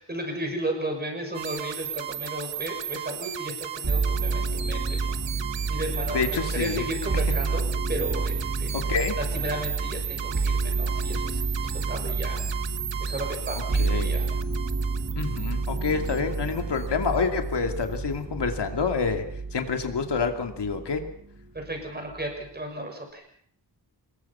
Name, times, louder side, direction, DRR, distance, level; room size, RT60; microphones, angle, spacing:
voice 1, 0.0-5.2 5.7-8.8 9.2-11.4 11.9-12.4 13.0-14.3 21.5-23.2, right 1 dB, 20° right, 3 dB, 6.5 m, -34 dB
sound 1, 1.3-17.2, right 9 dB, 80° right, 1.3 m, -36 dB
sound 2, 3.8-21.3 21.6-22.4, right 4 dB, 40° right, 4.2 m, -29 dB
voice 2, 6.1-6.9 8.7-9.1 13.7-14.2 15.2-19.2 19.5-21.0, left 5 dB, 70° left, 5 dB, 2.7 m, -27 dB
26.5 x 21.5 x 5.7 m, 0.62 s
wide cardioid pair, 155°, 43 cm